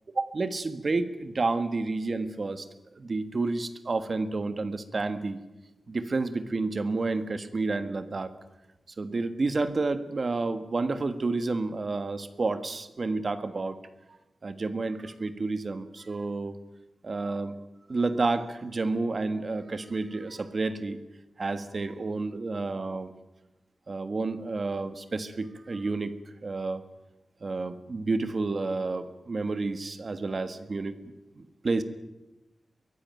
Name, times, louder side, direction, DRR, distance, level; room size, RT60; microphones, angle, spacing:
voice 1, 0.1-2.7 3.0-5.4 5.9-8.3 9.0-13.8 14.4-16.5 17.0-17.5 17.9-21.0 21.4-23.1 23.9-26.1 26.4-26.8 27.4-30.9 31.4-31.8, right 3 dB, 40° right, 10 dB, 1.6 m, -30 dB
23.5 x 16.0 x 9.4 m, 1.0 s
wide cardioid pair, 150°, 0 cm